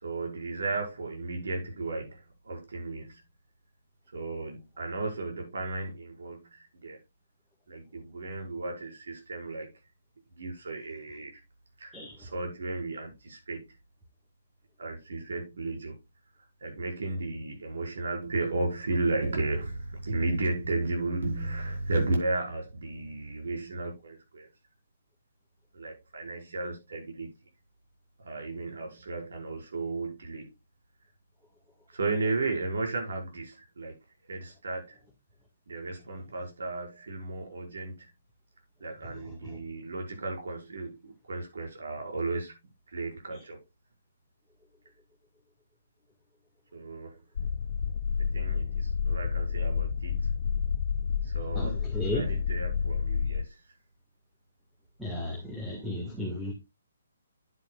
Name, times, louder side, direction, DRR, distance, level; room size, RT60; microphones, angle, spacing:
voice 1, 0.0-3.2 4.1-7.0 7.7-9.8 10.3-11.4 11.8-13.8 14.8-16.0 16.6-24.5 25.7-27.3 28.2-30.5 31.9-34.0 34.3-35.0 35.7-38.1 38.8-42.6 42.9-43.6 46.7-47.2 48.2-50.4 51.2-51.8 52.1-53.6, right 2 dB, 75° right, 5.5 m, -34 dB
voice 2, 39.1-39.6 43.3-43.4 51.5-52.3 55.0-56.5, left 1 dB, ahead, 1.9 m, -35 dB
sound 1, 47.4-53.5, left 6 dB, 60° left, 0.4 m, -29 dB
9.8 x 9.5 x 2.4 m
hypercardioid pair, 150°, 0 cm